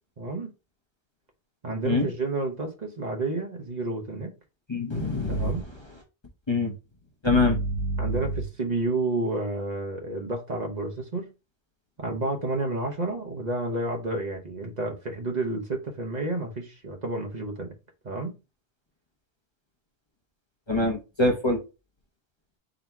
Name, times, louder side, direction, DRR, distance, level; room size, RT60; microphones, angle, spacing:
voice 1, 0.2-0.5 1.6-4.3 5.3-5.6 8.0-11.3 12.0-17.7 18.0-18.3, right 2 dB, 45° right, 0.9 m, -30 dB
voice 2, 4.7-5.5 6.5-6.7 7.2-8.2 20.7-21.6, left 2 dB, 30° left, 0.8 m, -24 dB
3.9 x 2.8 x 4.5 m
omnidirectional pair, 1.1 m